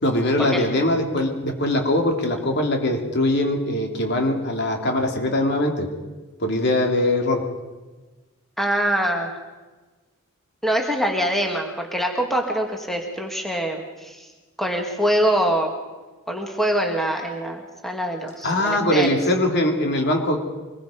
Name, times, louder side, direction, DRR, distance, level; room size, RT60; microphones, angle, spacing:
voice 1, 0.0-5.9 6.4-7.4 18.4-20.4, left 1 dB, 50° left, 3 dB, 2.9 m, -22 dB
voice 2, 8.6-9.3 10.6-14.3 14.6-15.7 16.3-19.1, equal, ahead, 2 dB, 2.1 m, -24 dB
25.0 x 21.0 x 5.2 m, 1.2 s
head